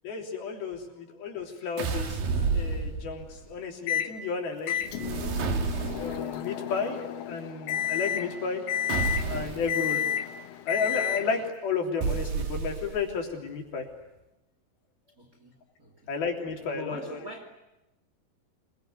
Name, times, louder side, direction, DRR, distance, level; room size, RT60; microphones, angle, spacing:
voice 1, 0.0-2.2 2.5-8.6 9.3-10.0 10.7-13.9 16.1-17.2, left 5 dB, 70° left, 5.3 m, -33 dB
sound 1, 1.8-3.4 4.8-6.3 8.9-9.7 12.0-13.1, right 4 dB, 65° right, 3.8 m, -30 dB
Microwave oven, 3.9-4.1 4.7-11.5, left 10 dB, 85° left, 1.4 m, -31 dB
voice 2, 15.2-16.1 16.6-17.7, equal, 25° right, 2.7 m, -45 dB
26.5 x 22.5 x 9.5 m
omnidirectional pair, 4.5 m